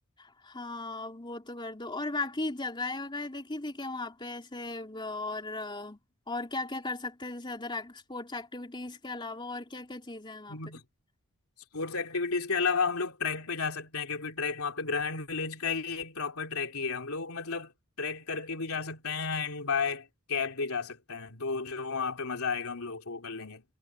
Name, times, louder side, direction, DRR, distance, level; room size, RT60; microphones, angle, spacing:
voice 1, 0.2-6.0 6.3-10.6, left 2 dB, 20° left, 3.2 m, -37 dB
voice 2, 10.5-10.8 11.7-17.7 18.0-23.6, left 5 dB, 80° left, 3.0 m, -32 dB
head